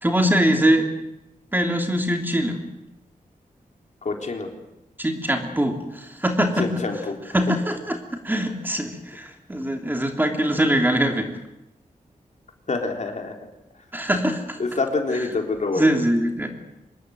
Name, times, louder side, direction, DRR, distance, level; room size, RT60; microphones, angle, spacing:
voice 1, 0.0-0.9 1.5-2.6 5.0-5.8 6.2-6.8 7.3-8.0 8.2-11.3 13.9-14.6 15.8-16.5, equal, 15° right, 3 dB, 3.0 m, -22 dB
voice 2, 4.0-4.5 6.6-7.1 12.7-13.4 14.6-15.9, left 3 dB, 55° left, 3 dB, 3.9 m, -26 dB
25.5 x 20.5 x 8.0 m, 0.90 s
wide cardioid pair, 120°, 15 cm